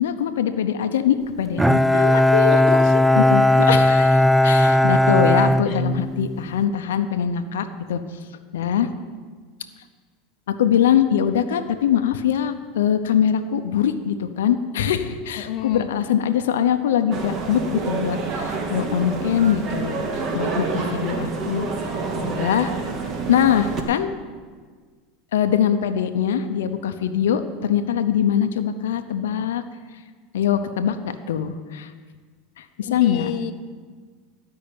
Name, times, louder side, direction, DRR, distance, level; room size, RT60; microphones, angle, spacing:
voice 1, 0.0-2.6 3.2-8.0 8.5-8.9 10.5-21.7 22.2-22.7 23.3-24.1 25.3-29.6 30.3-31.9 32.6-33.3, left 9 dB, 90° left, 8 dB, 0.7 m, -22 dB
Bowed string instrument, 1.6-6.4, left 1 dB, 5° right, 0.4 m, -17 dB
voice 2, 2.5-3.3 5.7-5.8 15.4-15.9 32.9-33.5, left 10 dB, 55° left, 7 dB, 0.8 m, -29 dB
sound 1, 17.1-23.8, right 4 dB, 40° right, 1.8 m, -28 dB
13.0 x 5.7 x 8.7 m, 1.6 s
supercardioid pair, 110°, 0 cm